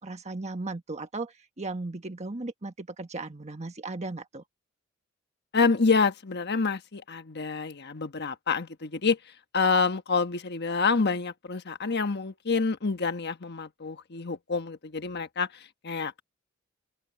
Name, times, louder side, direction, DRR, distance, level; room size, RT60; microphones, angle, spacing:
voice 1, 0.0-4.4, right 2 dB, 35° right, 1.3 m, -36 dB
voice 2, 5.5-9.2 9.5-16.2, left 4 dB, 55° left, 1.2 m, -27 dB
open air
head